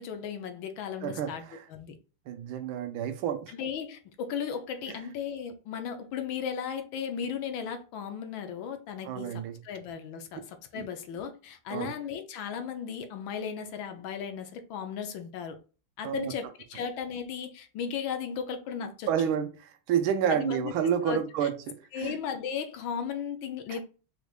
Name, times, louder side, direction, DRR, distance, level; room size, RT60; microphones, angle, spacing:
voice 1, 0.0-1.4 1.7-1.9 3.5-15.6 16.0-19.1 20.3-20.7 21.0-21.5 21.9-23.8, left 7 dB, 75° left, 1.5 m, -36 dB
voice 2, 1.0-1.6 2.3-3.5 4.9-5.0 9.0-9.6 10.8-10.9 11.7-11.9 16.0-16.3 19.1-19.5 19.9-22.2 23.7-23.8, right 9 dB, 85° right, 1.5 m, -29 dB
5.0 x 3.3 x 2.3 m
omnidirectional pair, 2.2 m